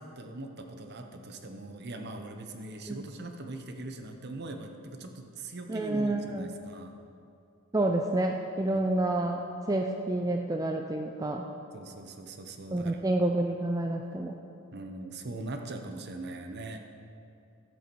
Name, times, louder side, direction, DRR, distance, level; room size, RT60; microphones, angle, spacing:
voice 1, 0.0-7.0 8.7-8.9 11.7-13.0 14.7-16.8, right 2 dB, 50° right, 5 dB, 0.8 m, -41 dB
voice 2, 5.7-6.5 7.7-9.4 9.7-11.5 12.7-14.4, right 2 dB, 15° right, 3 dB, 0.4 m, -29 dB
13.0 x 7.8 x 4.6 m, 2.6 s
head